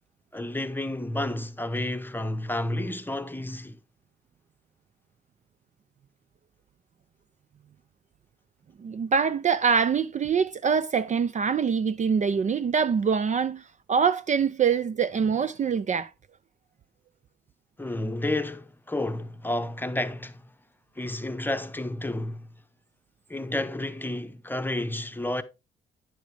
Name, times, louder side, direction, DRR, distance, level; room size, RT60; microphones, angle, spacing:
voice 1, 0.3-3.8 17.8-20.4 21.0-22.5 23.3-25.4, left 1 dB, 10° left, 0.9 m, -31 dB
voice 2, 8.8-16.1, right 6 dB, 35° right, 0.5 m, -24 dB
10.5 x 7.1 x 3.3 m
cardioid pair, 90°, 20 cm